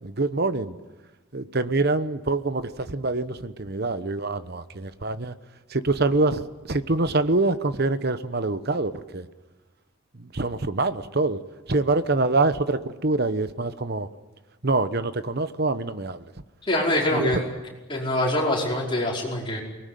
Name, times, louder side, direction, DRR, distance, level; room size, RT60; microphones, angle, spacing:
voice 1, 0.0-0.7 1.3-5.3 5.7-9.3 10.3-11.4 11.7-14.1 14.6-16.3 17.1-17.4, right 2 dB, 45° right, 12 dB, 1.0 m, -25 dB
voice 2, 16.6-17.5 17.9-19.6, left 1 dB, 25° left, -2 dB, 5.2 m, -24 dB
23.5 x 19.5 x 9.3 m, 1.2 s
head